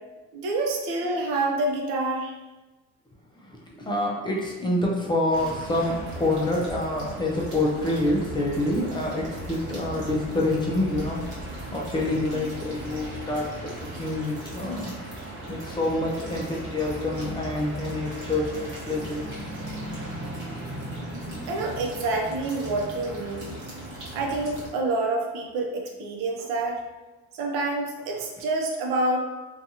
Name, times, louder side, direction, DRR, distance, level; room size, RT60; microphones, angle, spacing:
voice 1, 0.3-2.3 21.5-23.6 24.1-26.8 27.3-29.2, right 2 dB, 90° right, 1 dB, 0.6 m, -27 dB
voice 2, 3.8-11.2 11.5-13.7 14.0-14.9 15.5-19.5, left 1 dB, 15° left, -2 dB, 0.3 m, -27 dB
sound 1, 5.3-24.7, right 1 dB, 40° right, 0.9 m, -37 dB
2.6 x 2.3 x 2.7 m, 1.2 s
cardioid pair, 125°, 32 cm